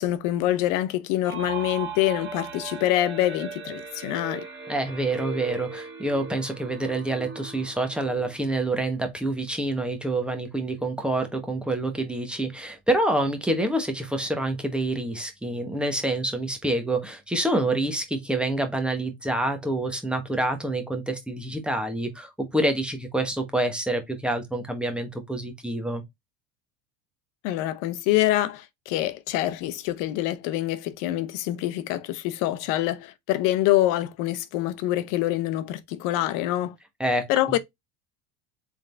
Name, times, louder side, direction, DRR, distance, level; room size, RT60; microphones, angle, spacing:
voice 1, 0.0-4.4 27.4-36.7 37.3-37.6, left 14 dB, 60° left, 0.8 m, -25 dB
sound 1, 1.2-8.9, right 5 dB, 30° right, 2.4 m, -38 dB
voice 2, 4.7-26.0 37.0-37.3, right 1 dB, 5° right, 1.1 m, -27 dB
3.7 x 3.7 x 3.2 m
supercardioid pair, 125°, 36 cm